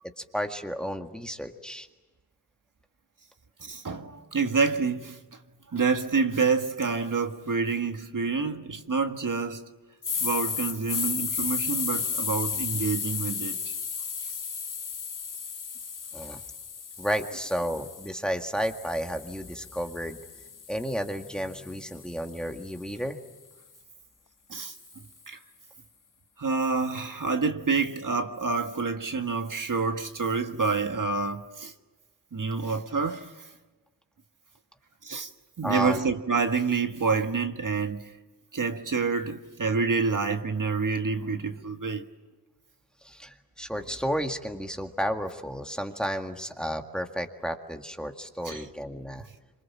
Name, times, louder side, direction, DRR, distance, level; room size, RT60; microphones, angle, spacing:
voice 1, 0.2-1.9 16.1-16.4 17.0-20.2 20.7-23.2 35.6-36.1 43.0-49.3, equal, ahead, 2.0 m, -32 dB
voice 2, 3.6-5.2 5.7-9.7 10.2-13.6 24.5-24.7 25.3-25.4 26.4-31.7 32.3-33.5 35.0-35.3 35.6-38.2 38.5-42.1 48.4-48.7, right 4 dB, 55° right, 1.6 m, -28 dB
sound 1, 10.0-18.1 18.6-22.8, left 6 dB, 55° left, 1.0 m, -34 dB
27.5 x 26.0 x 7.4 m
wide cardioid pair, 95°, 39 cm